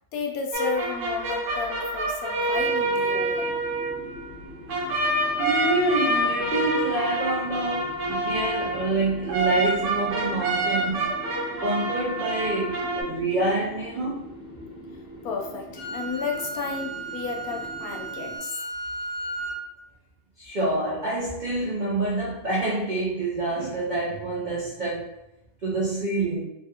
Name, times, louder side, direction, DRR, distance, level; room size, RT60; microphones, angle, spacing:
voice 1, 0.1-3.5 15.2-18.5, left 5 dB, 80° left, 1.0 m, -32 dB
sound 1, 0.5-13.0, right 2 dB, 90° right, 1.2 m, -27 dB
sound 2, 2.5-18.4, left 1 dB, 5° right, 0.5 m, -42 dB
voice 2, 5.4-11.1 11.6-14.3 20.4-25.1 25.6-26.4, right 2 dB, 70° right, 0.4 m, -27 dB
Wind instrument woodwind instrument, 15.7-19.6, right 2 dB, 55° left, 1.1 m, -34 dB
3.2 x 2.3 x 2.7 m
omnidirectional pair, 1.6 m